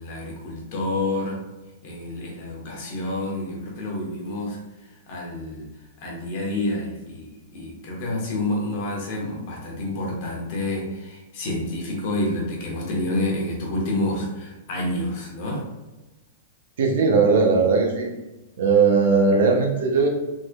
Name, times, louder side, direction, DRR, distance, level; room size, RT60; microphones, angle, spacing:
voice 1, 0.0-1.4 1.8-15.6, left 1 dB, 40° left, -2 dB, 1.0 m, -29 dB
voice 2, 16.8-18.1 18.6-20.1, right 4 dB, 60° right, 1 dB, 0.8 m, -18 dB
3.6 x 3.1 x 2.2 m, 1.1 s
supercardioid pair, 170°, 0 cm